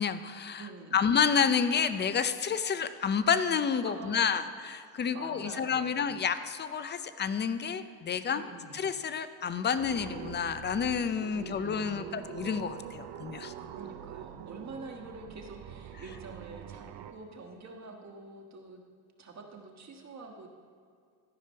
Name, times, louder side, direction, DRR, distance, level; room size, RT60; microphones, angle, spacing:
voice 1, 0.0-8.4 8.7-13.5, left 7 dB, 25° left, 12 dB, 0.5 m, -29 dB
voice 2, 0.6-1.0 3.8-4.5 5.1-6.1 8.3-8.9 11.3-12.3 13.5-18.8 19.2-20.5, right 3 dB, 40° right, 2 dB, 1.5 m, -47 dB
sound 1, 9.7-17.1, right 10 dB, 70° right, 0.8 m, -44 dB
13.0 x 5.1 x 5.5 m, 2.3 s
cardioid pair, 95°, 43 cm